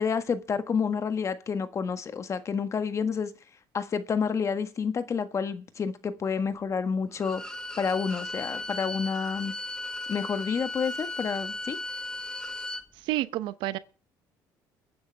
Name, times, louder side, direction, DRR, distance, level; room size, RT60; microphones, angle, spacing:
voice 1, 0.0-3.3 3.7-7.4 7.8-9.5 10.1-11.8, left 6 dB, 40° left, 1.5 m, -29 dB
Bowed string instrument, 7.2-12.8, left 2 dB, 10° left, 1.7 m, -36 dB
voice 2, 13.0-13.8, right 16 dB, 80° right, 0.8 m, -29 dB
22.5 x 9.6 x 3.5 m
supercardioid pair, 95°, 8 cm